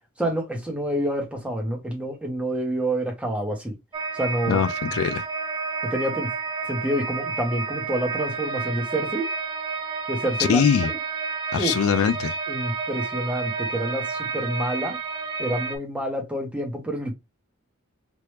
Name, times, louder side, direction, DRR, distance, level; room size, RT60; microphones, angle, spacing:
voice 1, 0.2-3.7 4.1-4.6 5.8-6.3 6.7-9.3 10.1-10.6 11.6-11.7 12.5-15.0 15.4-17.1, right 1 dB, 5° right, 1.1 m, -27 dB
sound 1, 3.9-15.8, right 4 dB, 20° right, 0.7 m, -30 dB
voice 2, 4.5-5.2 10.4-10.9 11.5-12.4, left 7 dB, 85° left, 0.4 m, -22 dB
3.2 x 2.9 x 3.2 m
head